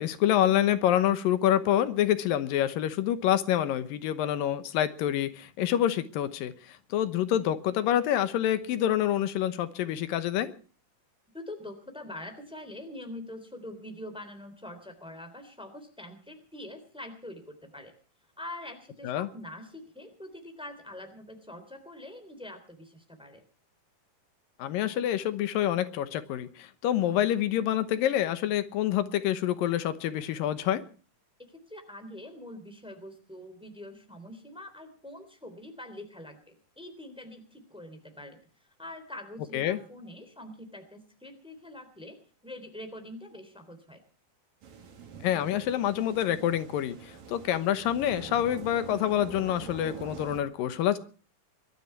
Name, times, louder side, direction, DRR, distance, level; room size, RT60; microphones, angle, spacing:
voice 1, 0.0-10.5 19.0-19.3 24.6-30.8 39.5-39.8 45.2-51.0, left 11 dB, 85° left, 12 dB, 2.8 m, -27 dB
voice 2, 11.3-17.9 18.4-23.4 31.5-38.4 38.8-44.0, left 1 dB, ahead, 7 dB, 3.0 m, -44 dB
sound 1, 44.6-50.4, right 6 dB, 90° right, 4.6 m, -45 dB
23.0 x 12.5 x 4.6 m, 0.39 s
omnidirectional pair, 3.9 m